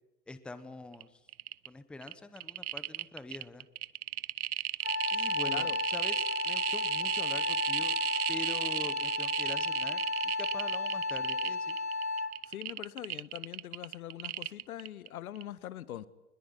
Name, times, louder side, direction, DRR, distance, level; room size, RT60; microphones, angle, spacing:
voice 1, 0.3-1.2 1.7-3.7 5.1-7.9 8.3-11.8, left 2 dB, ahead, 11 dB, 0.9 m, -44 dB
sound 1, 0.9-1.0 1.3-1.7 2.0-15.1 15.4-15.5, right 13 dB, 65° right, 0.9 m, -34 dB
Wind instrument woodwind instrument, 4.8-12.5, left 3 dB, 90° left, 2.7 m, -33 dB
voice 2, 5.5-5.8 12.5-16.1, left 12 dB, 60° left, 13 dB, 1.7 m, -42 dB
22.5 x 21.5 x 9.7 m, 1.0 s
hypercardioid pair, 140°, 47 cm